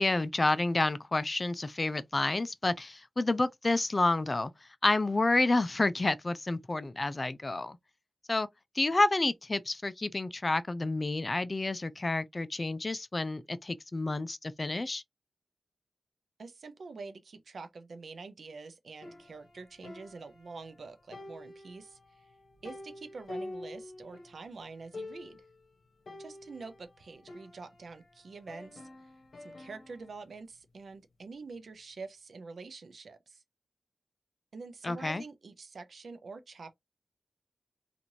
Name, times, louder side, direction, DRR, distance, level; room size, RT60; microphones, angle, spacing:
voice 1, 0.0-4.5 4.8-7.8 8.3-8.5 8.8-15.0 34.8-35.2, left 2 dB, 40° left, 0.4 m, -29 dB
voice 2, 16.4-22.2 22.6-25.4 26.2-29.1 29.4-33.4 34.5-36.8, right 4 dB, 80° right, 0.5 m, -46 dB
sound 1, 19.0-20.8 21.1-24.4 24.7-24.8 24.9-25.5 26.1-28.1 28.5-30.1, left 2 dB, 70° left, 0.8 m, -47 dB
3.0 x 2.5 x 2.6 m
cardioid pair, 55°, 0 cm